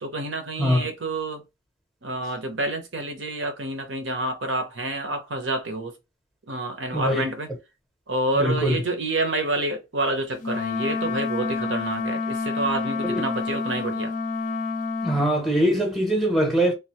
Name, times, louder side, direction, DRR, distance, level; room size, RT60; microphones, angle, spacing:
voice 1, 0.0-1.4 2.0-5.9 6.5-7.5 8.1-14.1, right 2 dB, 75° right, 1.0 m, -28 dB
voice 2, 6.9-7.2 8.3-8.8 13.0-13.2 15.0-16.7, equal, ahead, 0.8 m, -22 dB
Wind instrument woodwind instrument, 10.4-15.2, left 4 dB, 40° left, 0.5 m, -28 dB
3.4 x 2.6 x 3.0 m
head